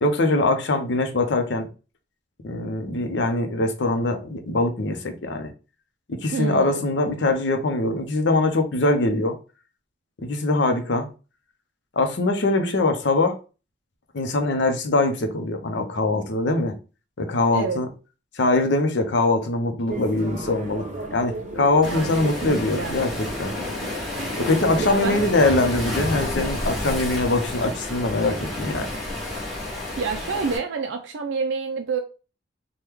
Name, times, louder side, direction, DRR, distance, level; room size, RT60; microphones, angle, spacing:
voice 1, 0.0-1.7 2.4-5.5 6.1-9.3 10.2-11.1 12.0-13.4 14.1-16.7 17.2-17.9 18.4-23.5 24.4-28.9, left 2 dB, 65° left, 0.6 m, -22 dB
voice 2, 6.3-6.9 17.5-17.8 21.8-23.0 24.8-25.3 30.0-32.0, right 5 dB, 65° right, 0.3 m, -28 dB
sound 1, 19.9-25.7, right 1 dB, 35° right, 0.7 m, -34 dB
Waves surf, 21.8-30.6, left 1 dB, ahead, 1.0 m, -30 dB
3.0 x 2.2 x 3.4 m
head